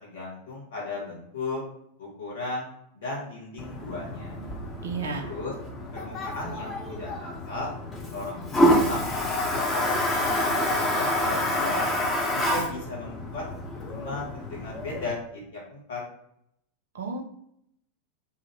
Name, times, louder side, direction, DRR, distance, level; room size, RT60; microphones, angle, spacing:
voice 1, 0.0-1.6 2.0-2.7 2.9-4.4 5.2-5.5 5.9-7.7 8.1-11.9 12.3-13.4 13.8-16.0, left 3 dB, 60° left, -3 dB, 1.1 m, -36 dB
Toilet flush, 3.6-15.1, left 1 dB, 20° left, 0.5 m, -28 dB
voice 2, 4.8-5.4 16.9-17.2, right 4 dB, 65° right, 5 dB, 0.4 m, -32 dB
2.4 x 2.3 x 3.1 m, 0.73 s
figure-of-eight pair, 90°, 0 cm